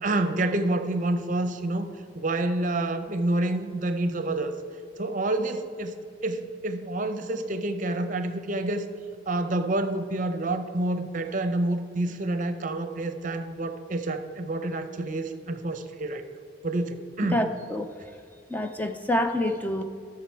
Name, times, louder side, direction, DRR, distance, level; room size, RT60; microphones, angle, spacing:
voice 1, 0.0-1.9 2.1-4.5 5.0-5.9 6.2-8.9 9.3-16.3 16.6-17.5, right 2 dB, 45° right, 9 dB, 0.6 m, -28 dB
voice 2, 17.3-17.9 18.5-19.8, left 1 dB, 10° left, 5 dB, 0.4 m, -27 dB
13.5 x 6.8 x 4.5 m, 2.3 s
head